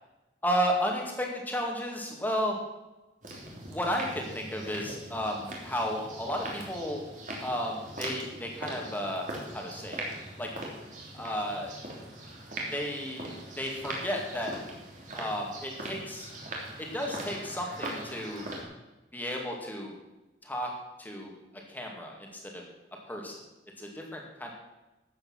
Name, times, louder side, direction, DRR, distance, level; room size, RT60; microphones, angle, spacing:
voice 1, 0.4-2.6 3.7-7.0 7.4-10.0 10.4-10.5 11.1-11.7 12.7-14.5 15.2-16.3 16.8-18.5 19.1-20.0 20.4-20.7 21.0-21.3 21.7-22.6 23.1-23.4 23.8-24.5, equal, 10° left, 0 dB, 2.3 m, -33 dB
sound 1, 3.2-18.6, right 1 dB, 45° right, 3.0 m, -41 dB
13.0 x 8.6 x 6.1 m, 1.1 s
head